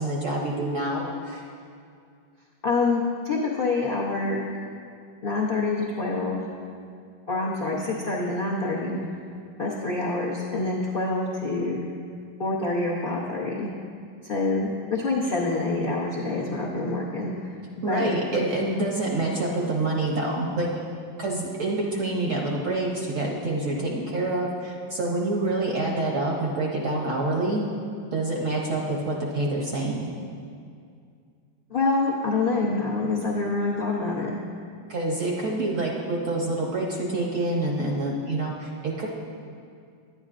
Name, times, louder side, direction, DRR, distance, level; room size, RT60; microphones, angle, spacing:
voice 1, 0.0-1.5 17.8-20.7 21.2-27.6 28.1-30.1 34.9-39.1, right 2 dB, 60° right, -2 dB, 0.9 m, -27 dB
voice 2, 2.6-4.4 5.2-6.4 7.3-9.0 9.6-11.8 12.4-13.7 14.3-17.5 17.9-18.1 31.7-34.3, left 3 dB, 70° left, -5 dB, 0.5 m, -26 dB
10.0 x 9.4 x 2.5 m, 2.3 s
omnidirectional pair, 2.1 m